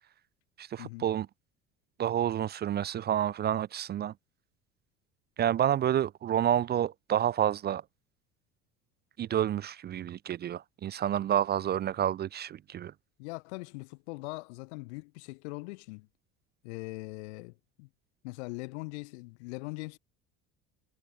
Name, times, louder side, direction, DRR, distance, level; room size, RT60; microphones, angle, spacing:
voice 1, 0.6-1.3 2.0-4.1 5.4-7.8 9.2-12.9, right 10 dB, 30° right, 0.4 m, -29 dB
voice 2, 13.2-16.1 16.6-17.9 18.2-20.0, left 26 dB, 80° left, 1.2 m, -41 dB
hypercardioid pair, 80°, 33 cm